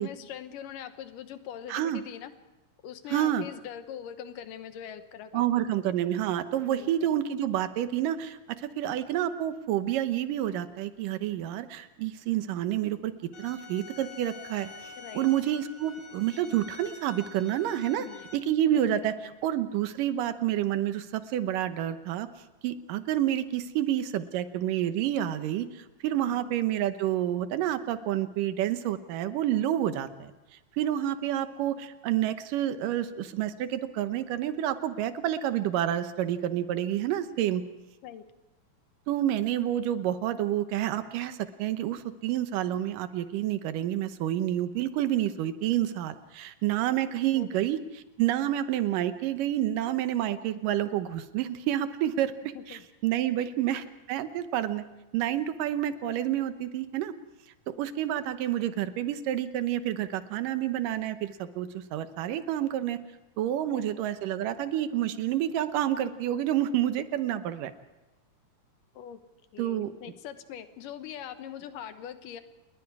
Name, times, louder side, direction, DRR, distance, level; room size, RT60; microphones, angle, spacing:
voice 1, 0.0-2.3 2.8-5.4 6.6-7.1 15.0-15.3 17.7-18.2 18.7-19.4 26.2-26.5 38.0-38.2 47.4-47.6 52.5-52.8 53.4-53.5 63.7-63.9 68.9-69.2 69.5-72.4, left 9 dB, 85° left, 10 dB, 2.8 m, -42 dB
voice 2, 1.7-2.0 3.1-3.5 5.3-13.1 13.4-14.7 15.1-18.1 18.3-22.3 22.6-30.3 30.8-37.6 39.1-52.3 52.7-54.8 55.1-57.1 57.7-63.0 63.4-67.7 69.6-69.9, right 12 dB, 90° right, 11 dB, 2.7 m, -29 dB
sound 1, 13.3-18.4, left 3 dB, 65° left, 3.6 m, -47 dB
29.0 x 21.0 x 4.8 m, 1.1 s
omnidirectional pair, 3.7 m